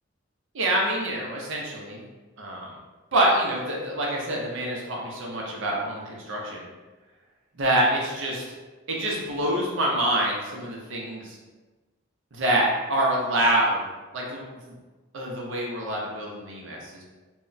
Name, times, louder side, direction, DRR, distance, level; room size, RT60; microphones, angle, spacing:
voice 1, 0.5-2.0 2.4-2.7 3.1-6.7 7.6-8.4 8.9-11.4 12.3-13.8 14.1-14.7 15.1-17.0, right 1 dB, 65° right, -2 dB, 0.6 m, -26 dB
2.2 x 2.1 x 3.8 m, 1.2 s
head